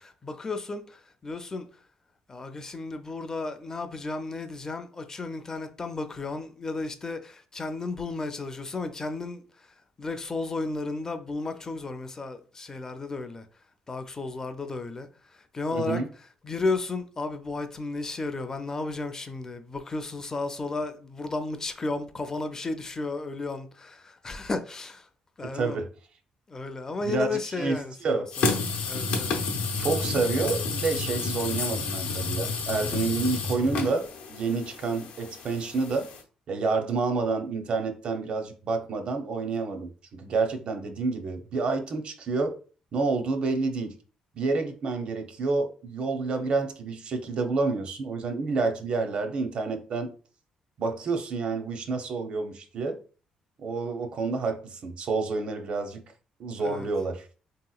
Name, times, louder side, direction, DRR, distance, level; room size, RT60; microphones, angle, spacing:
voice 1, 0.2-1.7 2.3-13.5 13.9-16.0 16.4-25.1 25.4-25.8 26.5-28.6 28.9-29.3 56.6-56.9, left 3 dB, 25° left, 0.4 m, -33 dB
voice 2, 15.7-16.1 25.5-25.9 27.0-28.3 29.8-36.1 36.5-42.5 42.9-44.0 44.4-50.1 50.8-53.0 53.6-56.0 56.4-57.2, right 4 dB, 55° right, 0.6 m, -29 dB
sound 1, 28.3-36.2, left 4 dB, 80° left, 0.6 m, -30 dB
3.5 x 2.8 x 2.3 m
cardioid pair, 110°, 2 cm